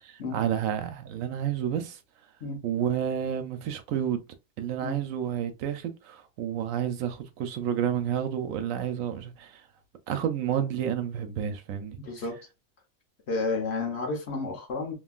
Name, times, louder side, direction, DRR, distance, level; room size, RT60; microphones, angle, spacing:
voice 1, 0.1-2.0 2.6-4.2 4.6-9.6 10.1-12.0, right 9 dB, 80° right, 1.0 m, -30 dB
voice 2, 12.0-12.4 13.3-14.9, left 3 dB, 55° left, 1.2 m, -31 dB
3.0 x 2.5 x 2.4 m
omnidirectional pair, 1.4 m